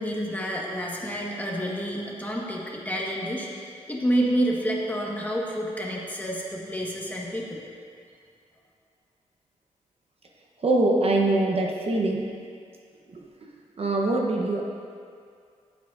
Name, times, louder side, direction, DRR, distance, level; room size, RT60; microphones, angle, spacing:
voice 1, 0.0-7.6, equal, 15° left, -3 dB, 1.6 m, -29 dB
voice 2, 10.6-12.3 13.1-13.2 13.8-14.6, right 2 dB, 50° right, -1 dB, 1.1 m, -23 dB
14.5 x 8.2 x 2.7 m, 2.3 s
cardioid pair, 75°, 13 cm